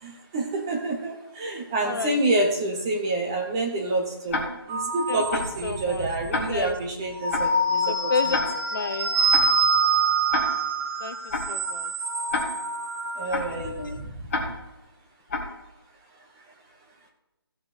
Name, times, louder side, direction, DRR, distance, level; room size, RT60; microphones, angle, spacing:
voice 1, 0.0-8.4 13.2-14.1, right 2 dB, 10° right, 1 dB, 0.7 m, -28 dB
voice 2, 1.8-2.2 5.1-5.2 5.6-6.1 6.5-6.8 7.9-8.4 8.7-9.1 11.0-11.9 13.2-14.0, left 4 dB, 50° left, 10 dB, 1.0 m, -31 dB
Tick-tock, 4.3-4.8 5.3-5.6 6.3-6.8 7.3-7.6 8.3-8.8 9.3-9.6 10.3-10.8 11.3-11.6 12.3-12.8 13.3-13.6 14.3-14.8 15.3-15.6, left 2 dB, 30° left, 1.9 m, -30 dB
sound 1, 4.7-6.1 7.0-13.7, right 3 dB, 25° right, 2.2 m, -25 dB
15.5 x 7.7 x 4.1 m, 0.98 s
hypercardioid pair, 170°, 14 cm